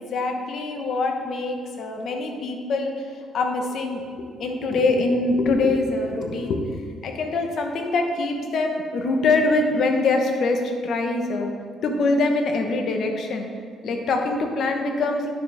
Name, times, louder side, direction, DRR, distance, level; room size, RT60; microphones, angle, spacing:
voice 1, 0.0-4.0 4.4-6.6 7.0-11.5 11.8-13.5 13.8-15.3, left 3 dB, 60° left, 3 dB, 1.0 m, -24 dB
9.3 x 6.9 x 3.5 m, 2.1 s
cardioid pair, 140°, 0 cm